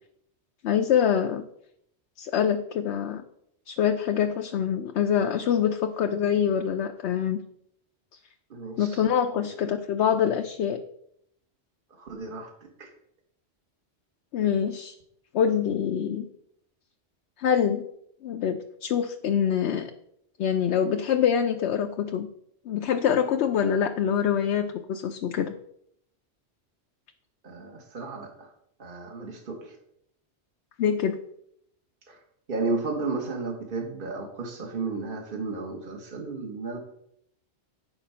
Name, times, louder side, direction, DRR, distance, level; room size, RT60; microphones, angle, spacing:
voice 1, 0.6-1.5 2.2-3.2 3.7-7.4 8.8-10.8 14.3-14.9 15.3-16.3 17.4-17.8 18.2-19.9 20.4-22.3 22.7-25.5 30.8-31.2, left 8 dB, 75° left, 5 dB, 0.9 m, -25 dB
voice 2, 8.5-9.0 9.4-9.5 12.0-12.5 12.8-12.9 27.4-28.5 28.8-29.7 32.1-32.2 32.5-36.8, right 3 dB, 50° right, 2 dB, 1.5 m, -33 dB
9.9 x 4.7 x 5.6 m, 0.73 s
omnidirectional pair, 1.2 m